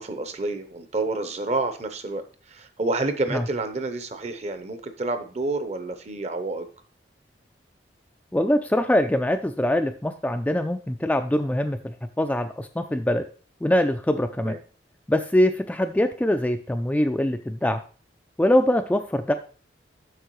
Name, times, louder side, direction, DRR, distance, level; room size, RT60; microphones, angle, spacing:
voice 1, 0.0-6.7 14.4-14.6, right 2 dB, 40° right, 9 dB, 0.8 m, -29 dB
voice 2, 8.3-13.2 13.6-14.6 15.1-17.8 18.4-19.3, left 1 dB, 10° left, 7 dB, 0.3 m, -23 dB
8.1 x 6.0 x 3.1 m, 0.39 s
head